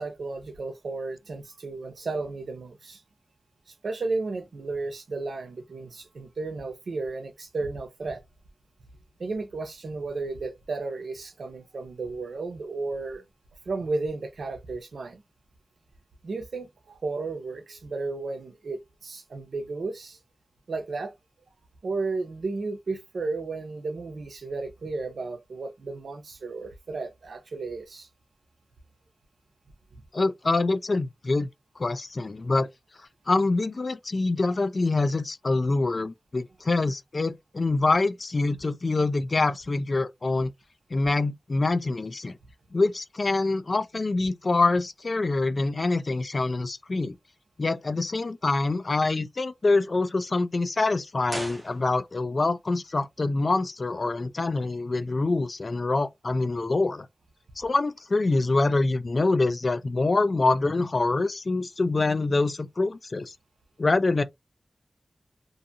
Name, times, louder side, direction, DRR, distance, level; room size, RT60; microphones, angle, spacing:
voice 1, 0.0-3.0 3.8-8.2 9.2-13.2 13.7-15.2 16.2-20.2 20.7-21.1 21.8-28.1, right 3 dB, 80° right, 0.7 m, -33 dB
voice 2, 30.1-31.5 31.8-32.7 33.3-40.5 40.9-42.4 42.7-47.2 47.6-57.1 57.6-63.3 63.8-64.2, left 3 dB, 45° left, 0.3 m, -25 dB
sound 1, 51.3-52.4 52.6-52.7, right 1 dB, 20° right, 0.8 m, -38 dB
2.6 x 2.4 x 2.6 m
wide cardioid pair, 90°, 0 cm